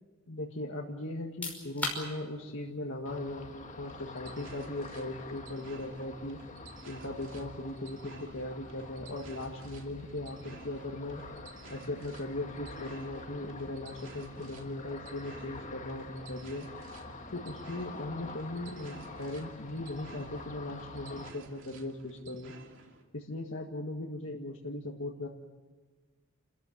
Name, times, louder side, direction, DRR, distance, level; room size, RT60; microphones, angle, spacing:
voice 1, 0.3-6.4 6.8-11.2 11.7-16.7 17.3-22.5 23.1-25.3, left 1 dB, 60° left, 0 dB, 1.9 m, -38 dB
sound 1, 1.2-13.8, left 2 dB, 5° left, 5.5 m, -47 dB
Ocean, 3.0-21.3, left 2 dB, 35° left, 1.9 m, -47 dB
sound 2, 3.9-23.0, right 3 dB, 60° right, 2.9 m, -54 dB
29.5 x 14.5 x 9.4 m, 1.4 s
head